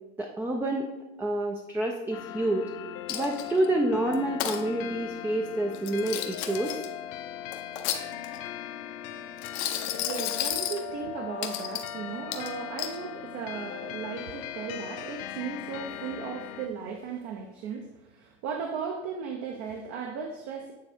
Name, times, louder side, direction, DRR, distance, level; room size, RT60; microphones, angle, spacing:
voice 1, 0.2-0.9 1.2-2.7 3.1-6.8, right 1 dB, 5° right, 2 dB, 0.4 m, -28 dB
sound 1, 2.1-16.7, left 10 dB, 50° left, 0.5 m, -39 dB
Coin (dropping), 3.1-3.7 4.1-4.6 5.7-6.9 7.5-8.5 9.4-10.8 11.4-11.9 12.3-13.0, left 11 dB, 70° left, 0.9 m, -32 dB
voice 2, 10.0-20.7, right 6 dB, 50° right, 3 dB, 0.8 m, -36 dB
8.8 x 3.4 x 3.5 m, 1.0 s
supercardioid pair, 115°, 33 cm